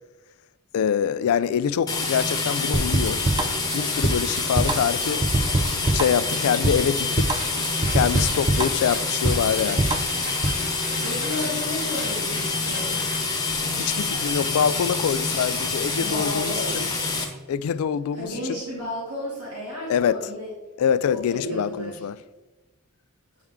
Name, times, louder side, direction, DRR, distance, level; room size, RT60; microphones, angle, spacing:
voice 1, 0.7-3.2 3.7-5.5 5.9-7.4 7.9-9.9 13.7-16.9 17.5-18.6 19.9-20.2 20.8-22.1, left 8 dB, 70° left, 0.3 m, -25 dB
sound 1, 1.9-17.2, left 3 dB, 15° left, 1.1 m, -27 dB
sound 2, 2.7-10.6, right 2 dB, 20° right, 0.3 m, -24 dB
sound 3, 7.3-13.3, right 2 dB, 45° right, 2.2 m, -41 dB
voice 2, 11.0-13.0 15.9-16.8 18.1-20.5 21.1-22.0, left 1 dB, 85° right, 2.4 m, -33 dB
8.4 x 4.4 x 3.6 m
head